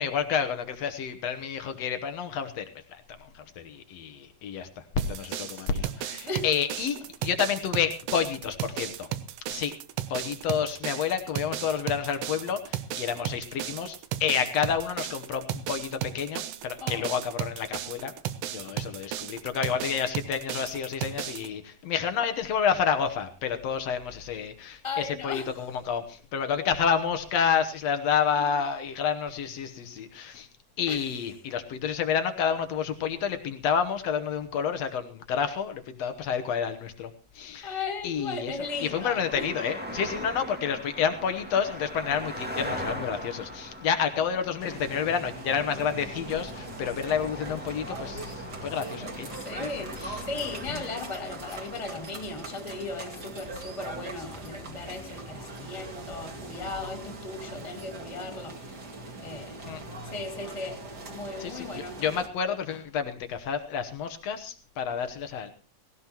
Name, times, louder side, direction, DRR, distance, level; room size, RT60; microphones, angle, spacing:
voice 1, 0.0-2.7 3.4-4.7 5.0-7.0 7.2-9.1 9.5-9.7 10.1-18.1 18.5-30.5 30.8-37.1 37.4-37.7 38.0-48.4 48.6-49.3 49.6-49.7 50.0-50.2 50.7-50.8 59.7-59.8 61.4-61.7 62.0-65.5, left 7 dB, 65° left, 8 dB, 1.7 m, -29 dB
sound 1, 5.0-21.5, right 11 dB, 75° right, 1.5 m, -35 dB
voice 2, 5.3-5.7 6.2-6.5 16.8-17.1 18.6-18.7 21.1-21.5 24.8-25.6 28.4-28.6 30.9-31.1 37.6-39.5 49.3-58.8 59.2-59.7 60.0-62.1, left 3 dB, 10° left, 4 dB, 2.0 m, -37 dB
sound 2, 38.6-56.1, equal, 5° right, 0.8 m, -42 dB
sound 3, 44.6-62.3, right 2 dB, 35° right, 2.1 m, -41 dB
18.0 x 17.5 x 3.0 m, 0.39 s
omnidirectional pair, 3.9 m